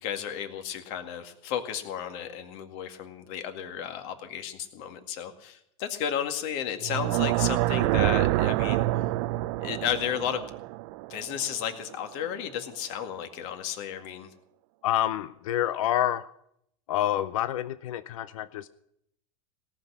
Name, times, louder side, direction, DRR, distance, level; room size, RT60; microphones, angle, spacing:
voice 1, 0.0-8.8 9.6-10.4 11.1-14.3, left 9 dB, 60° left, 6 dB, 2.0 m, -33 dB
sound 1, 6.8-11.9, right 17 dB, 60° right, 0.5 m, -27 dB
voice 2, 14.8-16.3 16.9-18.7, left 12 dB, 80° left, 14 dB, 0.6 m, -28 dB
18.0 x 6.3 x 10.0 m, 0.73 s
hypercardioid pair, 110°, 17 cm